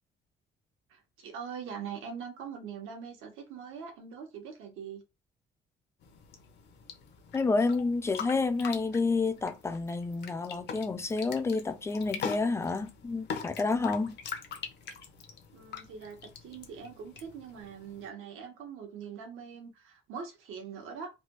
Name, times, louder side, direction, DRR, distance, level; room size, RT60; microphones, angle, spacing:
voice 1, 0.9-5.0 15.5-21.1, right 6 dB, 85° right, 1.1 m, -42 dB
sound 1, 6.0-18.1, left 6 dB, 55° left, 0.7 m, -43 dB
voice 2, 7.3-14.2, left 3 dB, 15° left, 0.3 m, -29 dB
3.3 x 2.3 x 2.9 m
cardioid pair, 150°, 21 cm